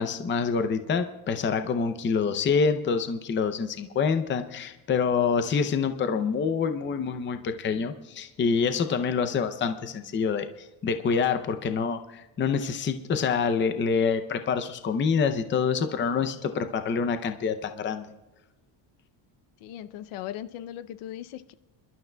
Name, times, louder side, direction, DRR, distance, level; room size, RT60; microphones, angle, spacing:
voice 1, 0.0-10.5 10.8-18.1, left 5 dB, 25° left, 0.5 m, -26 dB
voice 2, 19.6-21.5, left 12 dB, 80° left, 0.7 m, -38 dB
28.5 x 12.0 x 2.2 m
cardioid pair, 165°, 50 cm